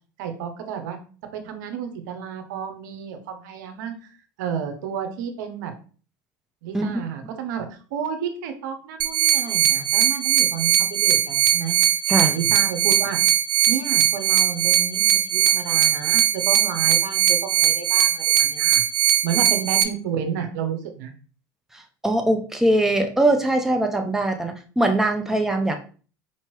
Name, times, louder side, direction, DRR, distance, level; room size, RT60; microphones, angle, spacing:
voice 1, 0.2-1.0 1.3-5.7 6.6-11.7 12.2-13.2 13.7-18.8 19.2-21.1, right 7 dB, 75° right, 6 dB, 0.8 m, -31 dB
sound 1, 9.0-19.8, right 11 dB, 50° right, 0.5 m, -20 dB
voice 2, 21.7-25.8, right 1 dB, 5° right, 3 dB, 0.7 m, -21 dB
4.5 x 2.9 x 3.1 m, 0.39 s
hypercardioid pair, 95°, 10 cm